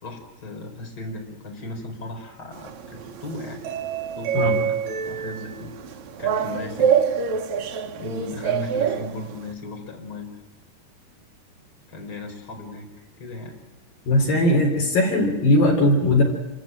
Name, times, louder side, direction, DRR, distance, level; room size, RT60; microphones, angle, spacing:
voice 1, 0.0-3.6 4.2-6.9 8.0-10.3 11.9-13.5, left 2 dB, 25° left, 1 dB, 4.8 m, -36 dB
sound 1, 2.5-9.5, right 7 dB, 65° right, 1.8 m, -26 dB
voice 2, 14.1-16.2, left 1 dB, 60° left, 2 dB, 5.2 m, -19 dB
29.5 x 16.0 x 9.1 m, 1.1 s
omnidirectional pair, 4.7 m